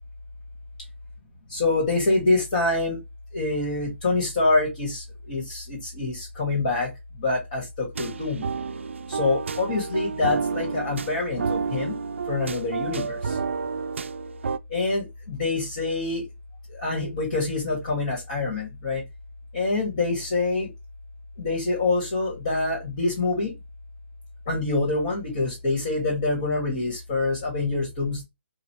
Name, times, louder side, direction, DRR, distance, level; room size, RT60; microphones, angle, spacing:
voice 1, 1.5-3.0 3.3-6.9 7.2-8.4 9.1-12.0 12.3-13.4 14.7-16.2 16.7-19.0 19.5-20.7 21.4-23.6 24.5-28.2, left 3 dB, 35° left, 1.7 m, -26 dB
sound 1, 8.0-14.6, right 5 dB, 70° right, 0.4 m, -30 dB
4.0 x 2.4 x 2.9 m
hypercardioid pair, 165°, 7 cm